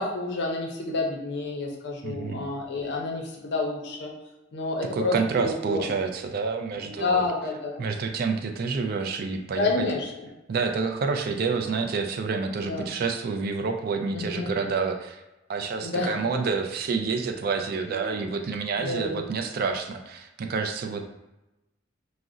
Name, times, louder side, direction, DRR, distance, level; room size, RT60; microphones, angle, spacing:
voice 1, 0.0-4.1 4.5-5.9 6.8-7.9 9.6-10.3 11.7-11.8 12.7-12.9 14.1-14.5 15.8-16.2 17.9-18.2 18.8-19.3, left 3 dB, 60° left, 0 dB, 0.5 m, -29 dB
voice 2, 2.0-2.5 4.9-7.3 7.8-9.7 10.5-15.2 15.5-21.0, right 4 dB, 50° right, 5 dB, 0.3 m, -28 dB
2.4 x 2.0 x 3.7 m, 0.98 s
head